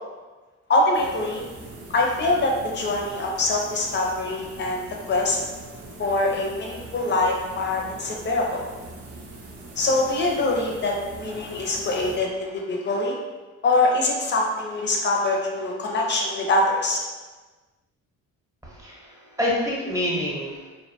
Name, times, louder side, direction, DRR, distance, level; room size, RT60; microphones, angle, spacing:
voice 1, 0.7-1.4 1.9-5.4 6.0-8.6 9.8-13.2 13.6-17.0, left 2 dB, 35° left, -1 dB, 0.6 m, -24 dB
sound 1, 0.9-12.6, right 2 dB, 50° right, 0.6 m, -42 dB
voice 2, 18.6-20.7, left 1 dB, 10° right, -5 dB, 0.8 m, -27 dB
2.6 x 2.2 x 2.7 m, 1.3 s
cardioid pair, 90°, 30 cm